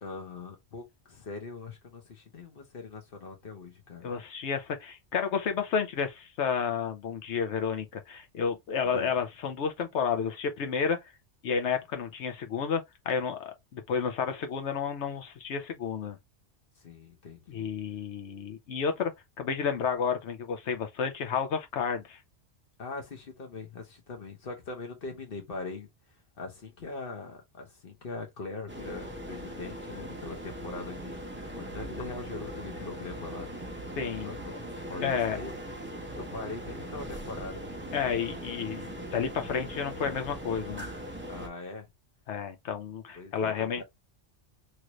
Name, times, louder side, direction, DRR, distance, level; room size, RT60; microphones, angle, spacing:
voice 1, 0.0-4.1 8.8-9.1 16.8-17.7 22.8-25.9 26.4-33.7 34.2-34.5 34.9-35.6 36.1-37.7 41.3-41.9 43.1-43.8, left 3 dB, 50° left, 1.1 m, -41 dB
voice 2, 4.0-11.0 11.4-16.2 17.5-19.1 19.4-22.2 34.0-34.3 35.0-35.4 37.9-40.9 42.3-43.8, left 6 dB, 70° left, 1.0 m, -31 dB
sound 1, 28.7-41.5, equal, 15° right, 0.6 m, -40 dB
3.1 x 2.5 x 2.9 m
omnidirectional pair, 1.2 m